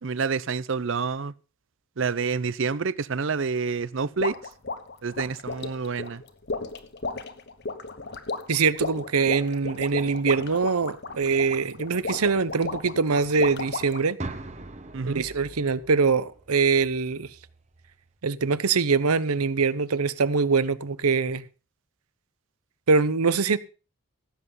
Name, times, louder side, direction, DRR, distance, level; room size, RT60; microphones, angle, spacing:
voice 1, 0.0-1.3 2.0-4.4 5.0-6.2 14.9-15.2, right 5 dB, 60° right, 0.6 m, -28 dB
sound 1, 4.2-14.1, left 3 dB, 50° left, 1.2 m, -34 dB
voice 2, 8.5-14.2 15.0-17.3 18.2-21.4 22.9-23.6, right 5 dB, 85° right, 0.8 m, -23 dB
sound 2, 14.2-18.2, right 2 dB, 30° right, 1.1 m, -42 dB
16.0 x 8.0 x 5.5 m
head